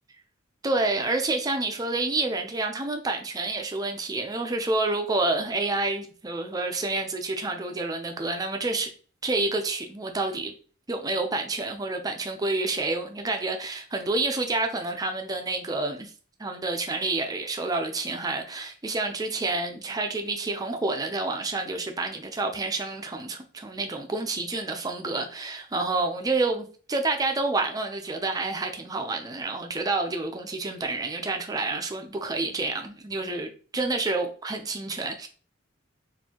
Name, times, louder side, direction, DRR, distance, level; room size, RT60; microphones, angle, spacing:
voice 1, 0.6-8.9 9.2-10.5 10.9-16.1 16.4-35.3, right 3 dB, 20° right, 0.5 m, -28 dB
4.4 x 2.6 x 2.9 m
head